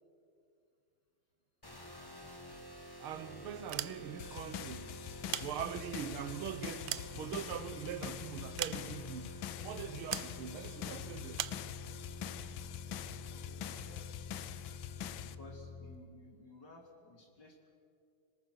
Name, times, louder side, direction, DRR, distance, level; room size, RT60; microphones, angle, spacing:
sound 1, 1.6-16.0, left 3 dB, 10° left, 1.5 m, -48 dB
voice 1, 3.0-4.9 5.4-11.4, right 9 dB, 90° right, 1.8 m, -42 dB
sound 2, 3.7-4.4 5.1-6.1 6.6-7.8 8.6-9.2 10.1-10.4 11.3-11.7, right 13 dB, 75° right, 1.4 m, -40 dB
sound 3, 4.2-15.4, left 11 dB, 75° left, 1.5 m, -45 dB
voice 2, 13.0-14.2 15.2-17.7, left 2 dB, 55° left, 3.5 m, -56 dB
26.5 x 19.0 x 6.3 m
omnidirectional pair, 2.3 m